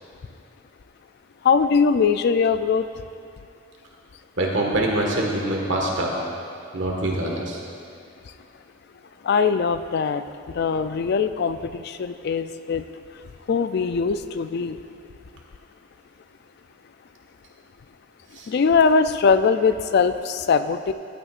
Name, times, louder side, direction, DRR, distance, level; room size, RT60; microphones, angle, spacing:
voice 1, 1.4-2.8 9.2-10.2 10.6-12.8 13.5-14.8 18.5-20.9, left 5 dB, 55° left, 10 dB, 0.4 m, -21 dB
voice 2, 4.4-6.1 6.7-7.6 18.4-18.5, right 1 dB, 70° right, -1 dB, 1.6 m, -24 dB
14.5 x 9.1 x 2.5 m, 2.6 s
head